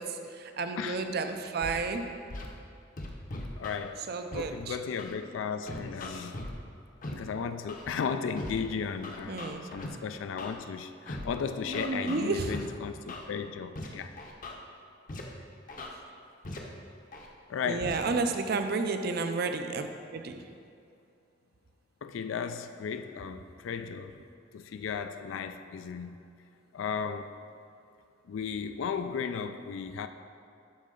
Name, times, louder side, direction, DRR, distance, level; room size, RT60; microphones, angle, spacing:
voice 1, 0.0-2.2 4.1-4.8 9.3-9.7 11.7-12.5 17.6-19.9 20.1-20.4, right 4 dB, 50° right, 7 dB, 0.5 m, -31 dB
voice 2, 0.8-1.1 3.6-4.0 4.3-6.4 7.1-9.4 9.7-14.1 17.5-18.0 22.0-24.2 24.5-26.2 26.7-27.3 28.3-30.1, left 6 dB, 80° left, 9 dB, 0.3 m, -35 dB
Scratching (performance technique), 1.6-1.8 2.3-2.5 3.0-3.8 4.3-4.4 5.0-5.1 5.7-6.5 7.0-7.1 7.7-7.9 8.4-8.5 9.0-9.9 10.4-10.5 11.1-11.3 11.7-12.6 13.1-13.2 13.8-13.9 14.2-14.5 15.1-15.2 15.7-15.9 16.4-16.6 17.1-17.3 17.8-18.0, left 2 dB, 45° left, 0.8 m, -39 dB
11.5 x 4.2 x 3.7 m, 2.5 s
head